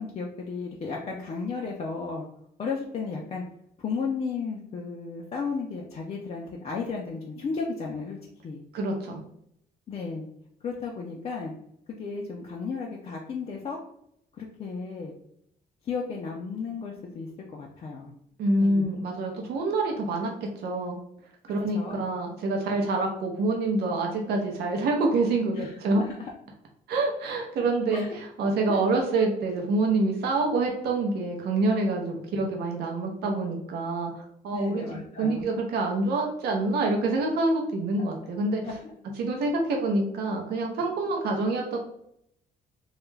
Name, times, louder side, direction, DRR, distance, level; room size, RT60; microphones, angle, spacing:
voice 1, 0.0-2.3 2.6-3.4 3.8-8.2 8.4-8.6 9.9-10.3 10.6-11.5 11.9-13.8 14.4-15.1 15.8-18.1 18.6-18.9 21.5-22.0 25.5-26.3 27.9-28.2 28.7-28.8 34.5-35.5 38.0-38.1 38.6-38.9, left 4 dB, 40° left, -2 dB, 0.4 m, -34 dB
voice 2, 8.7-9.2 18.4-21.0 21.5-26.0 26.9-34.8 35.2-38.6 39.2-41.8, right 2 dB, 80° right, 1 dB, 0.6 m, -26 dB
2.3 x 2.1 x 3.1 m, 0.74 s
cardioid pair, 115°, 17 cm